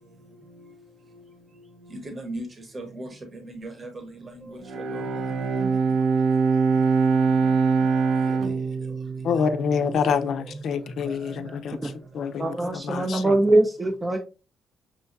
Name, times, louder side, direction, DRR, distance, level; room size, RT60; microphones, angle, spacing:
voice 1, 1.9-2.4 2.7-3.1 3.5-3.9 4.5-4.6 4.9-5.0 8.3-8.5 9.4-9.5 11.1-11.2 11.4-11.5, right 1 dB, 35° right, 1.0 m, -37 dB
Bowed string instrument, 4.7-10.2, right 5 dB, 80° right, 0.5 m, -23 dB
voice 2, 9.2-13.4, left 6 dB, 65° left, 0.4 m, -27 dB
voice 3, 12.4-14.2, right 2 dB, 20° right, 0.5 m, -22 dB
6.1 x 2.2 x 2.6 m
cardioid pair, 90°, 0 cm